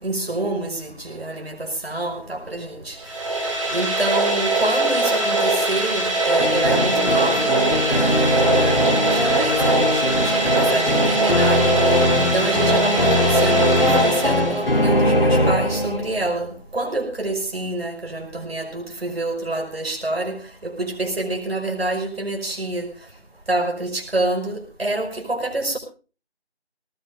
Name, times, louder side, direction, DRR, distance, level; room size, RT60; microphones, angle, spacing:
voice 1, 0.0-22.9 23.5-25.8, right 2 dB, 60° right, 3 dB, 5.8 m, -27 dB
sound 1, 3.0-14.9, right 2 dB, 30° right, 4.7 m, -21 dB
sound 2, 6.4-16.2, left 1 dB, 55° left, 4.3 m, -21 dB
21.0 x 19.5 x 2.6 m, 0.36 s
figure-of-eight pair, 175°, 33 cm